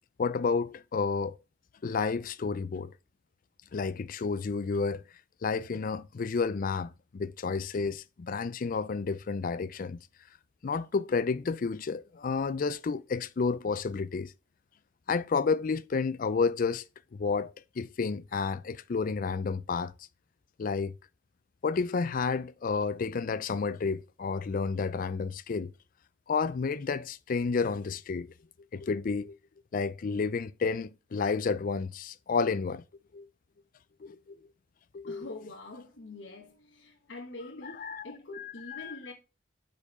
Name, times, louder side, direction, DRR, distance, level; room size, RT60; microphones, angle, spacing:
voice 1, 0.2-1.4 1.8-2.9 3.7-5.0 5.4-10.0 10.6-14.3 15.1-16.8 17.1-19.9 20.6-20.9 21.6-25.7 26.3-28.3 28.7-29.4 29.7-32.8 33.1-33.3 34.0-34.4 34.9-35.3 37.6-38.0 38.4-38.9, left 4 dB, 45° left, 0.4 m, -31 dB
voice 2, 35.1-39.1, left 2 dB, 70° left, 1.3 m, -45 dB
5.1 x 4.4 x 5.3 m
head